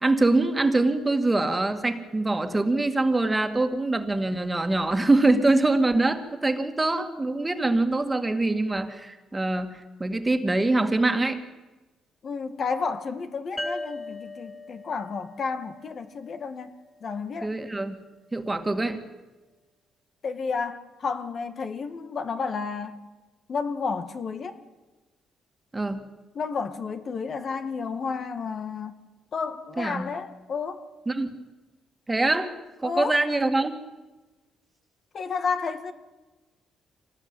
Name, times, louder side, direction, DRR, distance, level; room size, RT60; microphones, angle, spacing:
voice 1, 0.0-9.7 10.0-11.4 17.4-18.0 18.3-19.0 25.7-26.1 29.8-30.1 31.1-31.3 32.1-32.5 32.8-33.8, right 2 dB, 15° right, 7 dB, 2.2 m, -24 dB
voice 2, 12.2-16.7 17.0-17.5 20.2-23.0 23.5-24.6 26.4-29.0 29.3-30.8 32.8-33.2 35.1-35.9, left 5 dB, 50° left, 9 dB, 1.9 m, -31 dB
sound 1, 13.6-17.0, left 1 dB, ahead, 1.6 m, -39 dB
25.5 x 19.0 x 9.0 m, 1.2 s
cardioid pair, 90°, 0 cm